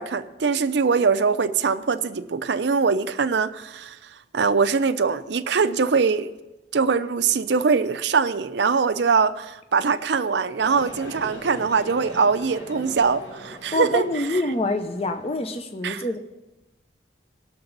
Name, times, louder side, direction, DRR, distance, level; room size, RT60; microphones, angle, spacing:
voice 1, 0.0-4.0 4.3-6.3 6.7-14.1 15.8-16.0, right 5 dB, 70° right, 12 dB, 0.5 m, -22 dB
sound 1, 10.6-15.6, equal, 80° left, 1.9 m, -41 dB
voice 2, 13.7-16.2, left 1 dB, 35° left, 7 dB, 0.6 m, -26 dB
19.5 x 6.8 x 4.0 m, 1.1 s
head